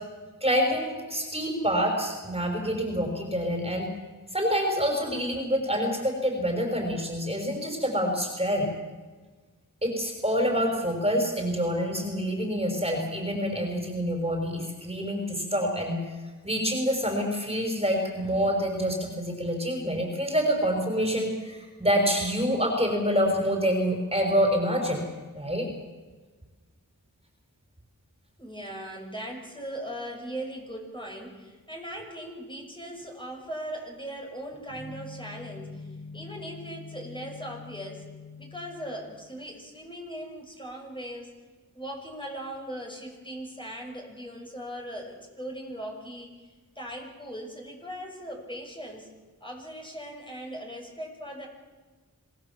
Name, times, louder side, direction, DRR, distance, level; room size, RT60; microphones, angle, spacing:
voice 1, 0.4-3.9 4.3-8.7 9.8-16.0 16.4-25.0 25.3-25.7, equal, 15° right, 2 dB, 5.8 m, -27 dB
voice 2, 28.4-38.1 38.4-41.4 41.7-49.1 49.4-51.5, equal, 15° left, 0 dB, 6.9 m, -39 dB
sound 1, 34.7-39.0, left 4 dB, 90° left, 4.8 m, -44 dB
26.5 x 19.5 x 7.5 m, 1.4 s
wide cardioid pair, 45°, 35 cm